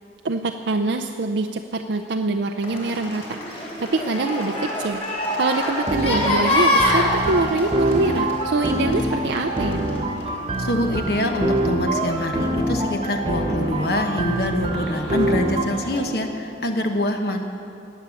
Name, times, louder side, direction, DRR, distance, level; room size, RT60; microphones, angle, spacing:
voice 1, 0.2-5.0 5.3-9.8, right 3 dB, 85° right, 4 dB, 0.6 m, -24 dB
sound 1, 2.6-16.0, left 1 dB, 35° left, 3.2 m, -27 dB
sound 2, 5.7-15.6, right 1 dB, 30° right, 1.2 m, -25 dB
voice 2, 10.6-17.4, left 1 dB, 60° left, 4 dB, 1.1 m, -25 dB
19.0 x 8.0 x 7.1 m, 2.7 s
head